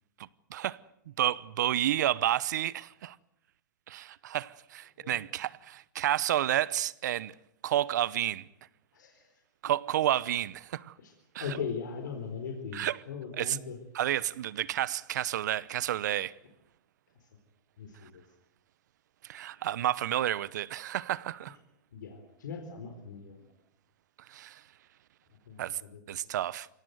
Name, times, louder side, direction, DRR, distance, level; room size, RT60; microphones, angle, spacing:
voice 1, 1.2-3.2 3.9-7.3 7.6-8.5 9.6-10.9 11.3-11.6 12.7-13.0 13.3-13.6 13.9-16.3 19.2-21.6 24.3-24.6 25.6-25.8 26.1-26.7, right 12 dB, 70° right, 0.9 m, -30 dB
voice 2, 8.9-9.3 11.0-11.1 11.4-13.8 17.8-18.2 21.9-23.4 25.5-26.0, left 6 dB, 80° left, 4.1 m, -39 dB
24.0 x 17.5 x 9.3 m
hypercardioid pair, 130°, 10 cm